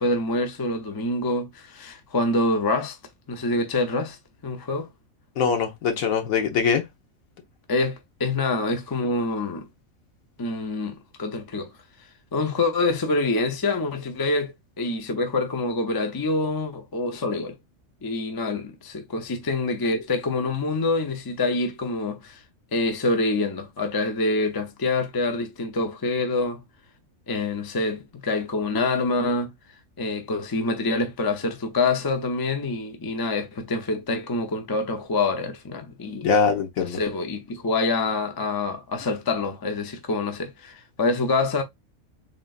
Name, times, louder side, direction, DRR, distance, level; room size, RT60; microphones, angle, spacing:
voice 1, 0.0-3.0 3.3-4.9 7.7-9.7 10.4-11.7 12.3-17.6 18.0-22.4 22.7-26.6 27.3-29.5 30.0-36.3 36.8-41.6, left 2 dB, 35° left, 0.4 m, -26 dB
voice 2, 5.4-6.8 36.2-37.0, left 6 dB, 80° left, 1.3 m, -22 dB
3.8 x 3.7 x 2.3 m
omnidirectional pair, 1.4 m